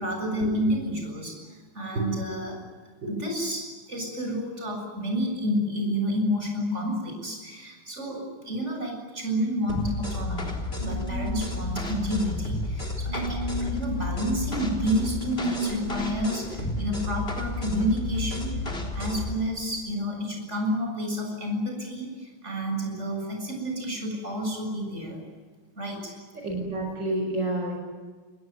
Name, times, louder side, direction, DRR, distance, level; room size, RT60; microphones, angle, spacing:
voice 1, 0.0-2.6 3.1-18.5 18.9-25.2 25.8-26.1, equal, 30° right, 2 dB, 7.7 m, -30 dB
sound 1, 9.7-19.4, left 2 dB, 25° left, 3.9 m, -32 dB
sound 2, 10.8-11.4 13.1-13.7 15.5-16.2, right 2 dB, 90° left, 6.2 m, -34 dB
voice 2, 26.3-27.8, right 2 dB, 55° right, 0 dB, 5.9 m, -29 dB
29.0 x 21.0 x 9.4 m, 1.4 s
omnidirectional pair, 2.4 m